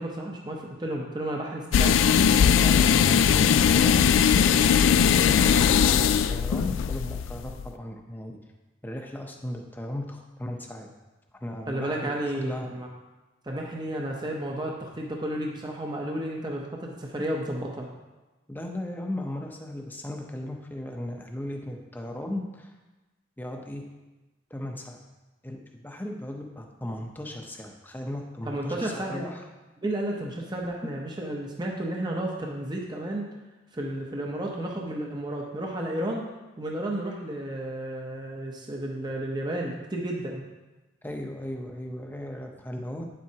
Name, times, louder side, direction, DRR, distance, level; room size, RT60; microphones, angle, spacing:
voice 1, 0.0-2.0 11.7-12.9 13.4-17.9 28.4-29.3 29.8-33.3 33.7-36.2 36.6-40.4, right 1 dB, 20° right, 0 dB, 0.8 m, -32 dB
sound 1, 1.7-7.7, left 7 dB, 85° left, 0.3 m, -20 dB
voice 2, 2.4-8.4 8.8-10.9 11.4-12.1 12.4-12.7 18.5-22.7 23.4-23.8 24.5-25.0 25.4-29.4 41.0-43.0, left 1 dB, 10° left, 2 dB, 0.7 m, -36 dB
9.5 x 7.5 x 2.8 m, 1.1 s
head